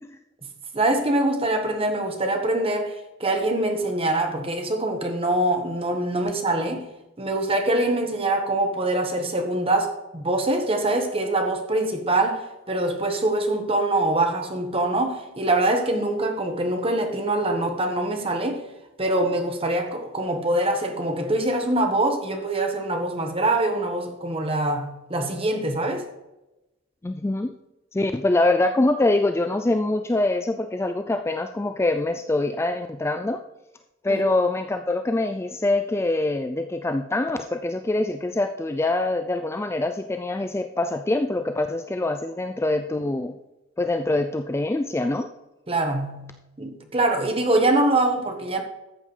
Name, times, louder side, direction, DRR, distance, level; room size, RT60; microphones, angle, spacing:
voice 1, 0.7-6.9 7.2-18.6 19.0-26.1 34.1-34.2 45.7-48.6, right 2 dB, 30° right, 1.3 m, -24 dB
voice 2, 27.0-27.5 27.9-33.4 34.0-43.4 43.8-45.3, left 2 dB, 15° left, 0.3 m, -24 dB
13.5 x 7.6 x 3.3 m
head